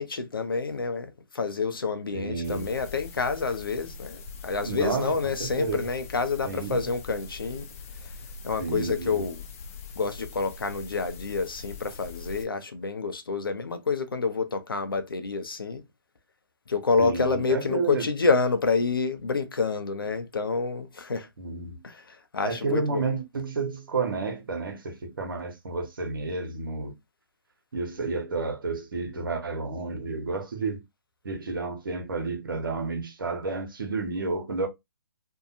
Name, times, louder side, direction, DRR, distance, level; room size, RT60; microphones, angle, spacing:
voice 1, 0.0-7.7 8.4-9.4 10.0-15.8 16.7-21.3 21.8-23.0, left 4 dB, 80° left, 0.6 m, -28 dB
voice 2, 2.1-2.7 4.6-5.9 6.4-6.8 8.6-9.3 17.0-18.1 21.4-21.8 22.4-26.9 27.7-30.8 31.2-34.7, right 4 dB, 70° right, 1.0 m, -31 dB
sound 1, 2.4-12.4, left 4 dB, 40° left, 0.5 m, -42 dB
2.7 x 2.2 x 2.6 m
figure-of-eight pair, 135°, 12 cm